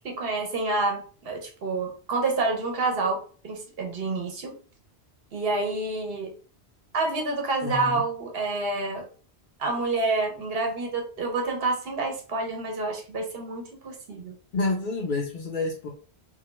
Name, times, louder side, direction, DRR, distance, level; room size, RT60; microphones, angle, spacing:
voice 1, 0.0-4.5 5.3-6.3 6.9-9.0 9.6-14.3, right 3 dB, 65° right, 2 dB, 0.8 m, -28 dB
voice 2, 7.6-8.0 14.5-15.9, left 3 dB, 60° left, 1 dB, 0.6 m, -28 dB
2.3 x 2.2 x 2.9 m, 0.40 s
omnidirectional pair, 1.1 m